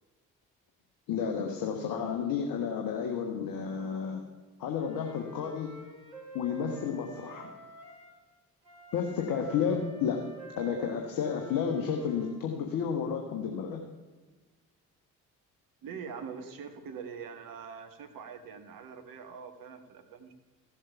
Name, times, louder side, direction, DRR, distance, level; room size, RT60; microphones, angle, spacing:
voice 1, 1.1-4.2 4.6-5.7 6.3-7.5 8.9-10.2 10.6-13.8, left 7 dB, 55° left, 2 dB, 1.4 m, -31 dB
Wind instrument woodwind instrument, 4.7-8.1 8.6-12.4, right 1 dB, 80° right, 2.3 m, -48 dB
voice 2, 15.8-20.3, right 6 dB, 50° right, 6 dB, 1.5 m, -43 dB
15.0 x 7.3 x 5.6 m, 1.3 s
figure-of-eight pair, 45°, 41 cm